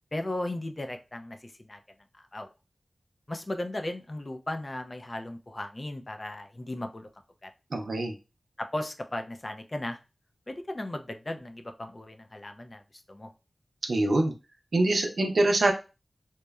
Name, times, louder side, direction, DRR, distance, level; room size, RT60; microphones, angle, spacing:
voice 1, 0.1-1.8 2.1-2.5 3.3-7.1 7.4-7.5 8.6-10.0 10.5-12.8 13.1-13.3, left 1 dB, 35° left, 6 dB, 0.4 m, -36 dB
voice 2, 7.7-8.1 13.9-14.3 14.7-15.7, right 2 dB, 80° right, 3 dB, 0.5 m, -24 dB
2.9 x 2.0 x 2.3 m, 0.29 s
wide cardioid pair, 60°, 0 cm